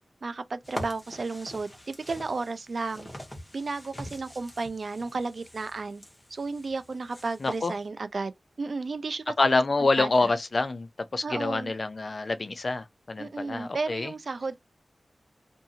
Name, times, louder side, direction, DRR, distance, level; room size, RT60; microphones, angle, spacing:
voice 1, 0.2-3.1 3.5-6.0 6.3-8.3 8.6-9.6 10.0-10.3 11.2-11.7 13.2-14.6, right 3 dB, 70° right, 0.4 m, -33 dB
sound 1, 0.6-7.8, equal, 30° left, 1.1 m, -44 dB
voice 2, 7.4-7.7 9.4-14.1, left 3 dB, 60° left, 0.3 m, -27 dB
2.6 x 2.4 x 2.7 m
cardioid pair, 50°, 0 cm